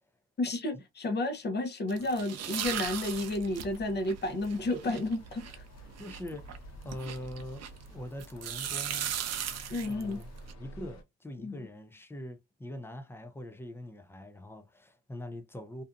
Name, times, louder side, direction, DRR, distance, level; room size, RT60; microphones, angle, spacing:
voice 1, 0.4-5.6 9.7-10.2 11.4-11.6, left 2 dB, 35° left, 0.8 m, -32 dB
sound 1, 1.9-7.9 8.2-10.5, right 9 dB, 60° right, 0.5 m, -38 dB
sound 2, 2.6-11.0, right 1 dB, 65° left, 0.7 m, -50 dB
voice 2, 6.0-9.2 9.9-10.3 10.6-15.8, left 1 dB, 10° left, 0.4 m, -43 dB
2.6 x 2.3 x 2.4 m
cardioid pair, 90°, 30 cm